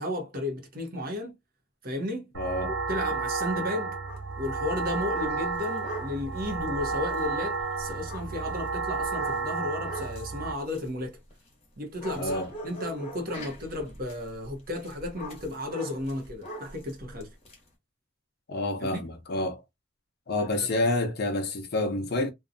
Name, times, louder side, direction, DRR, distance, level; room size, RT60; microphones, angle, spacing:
voice 1, 0.0-1.4 1.8-2.2 2.9-4.0 4.4-11.2 11.8-17.3 18.8-19.0 20.6-20.9, left 1 dB, 50° right, 0.8 m, -34 dB
voice 2, 2.3-2.7 12.2-12.5 18.5-19.6 20.3-22.3, left 2 dB, 55° left, 0.6 m, -28 dB
sound 1, 2.3-10.5, right 4 dB, 65° right, 0.4 m, -32 dB
sound 2, 4.0-4.3 4.7-11.7 12.0-17.6, right 1 dB, 30° left, 1.0 m, -43 dB
2.7 x 2.2 x 2.5 m
head